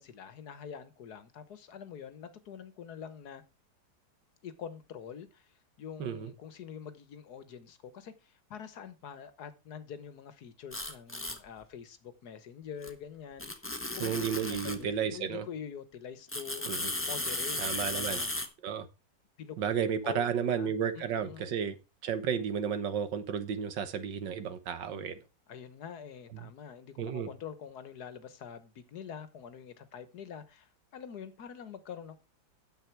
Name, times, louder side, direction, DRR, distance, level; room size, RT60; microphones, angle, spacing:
voice 1, 0.0-3.4 4.4-14.2 14.5-18.3 19.4-19.8 20.0-21.5 25.5-32.2, left 7 dB, 65° left, 1.5 m, -46 dB
voice 2, 6.0-6.3 14.0-15.4 16.7-16.9 17.6-18.2 18.6-18.9 19.6-21.8 22.0-25.2 26.3-26.5 27.0-27.3, right 7 dB, 90° right, 1.9 m, -32 dB
sound 1, 10.7-11.4 12.8-12.9 13.4-14.8 16.3-18.5, left 1 dB, 10° left, 0.8 m, -35 dB
9.6 x 7.7 x 4.5 m
omnidirectional pair, 1.9 m